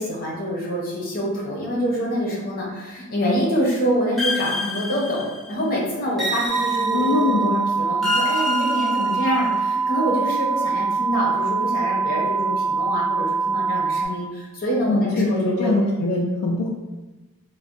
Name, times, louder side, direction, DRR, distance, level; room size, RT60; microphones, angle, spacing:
voice 1, 0.0-5.2 5.5-15.7, equal, 40° left, -4 dB, 0.9 m, -26 dB
sound 1, 4.2-5.5 6.2-7.3 8.0-9.5, left 2 dB, ahead, 0.7 m, -28 dB
sound 2, 6.5-14.1, right 5 dB, 40° right, 1.0 m, -23 dB
voice 2, 6.9-7.4 14.9-16.7, left 2 dB, 80° left, -2 dB, 0.4 m, -22 dB
3.2 x 2.2 x 2.5 m, 1.1 s
head